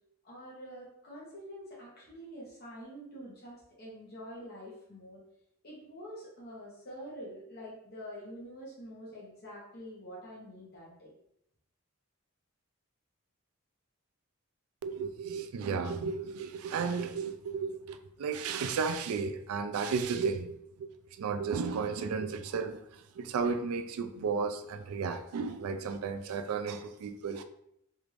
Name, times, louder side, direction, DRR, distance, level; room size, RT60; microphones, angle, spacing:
voice 1, 0.2-5.2 5.6-11.1, equal, 45° left, 0.9 m, -46 dB
voice 2, 14.8-20.9 21.2-22.8 23.2-27.4, right 5 dB, 85° right, 0.3 m, -33 dB
3.4 x 2.5 x 3.1 m
head